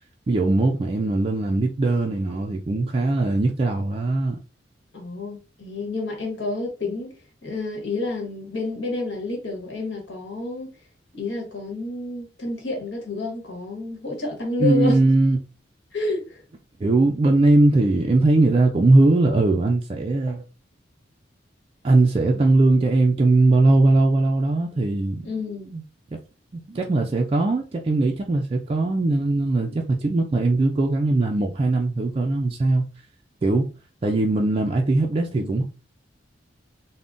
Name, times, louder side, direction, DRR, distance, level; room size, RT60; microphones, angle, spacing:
voice 1, 0.3-4.4 14.6-15.4 16.8-20.4 21.8-25.3 25.7-25.8 26.5-32.8 33.4-33.6 34.0-35.6, right 2 dB, 30° right, 0.3 m, -20 dB
voice 2, 4.9-7.1 7.4-10.7 11.1-15.1 15.9-16.4 25.2-25.7 35.4-35.5, left 2 dB, 75° left, 1.1 m, -29 dB
3.6 x 2.1 x 2.5 m
head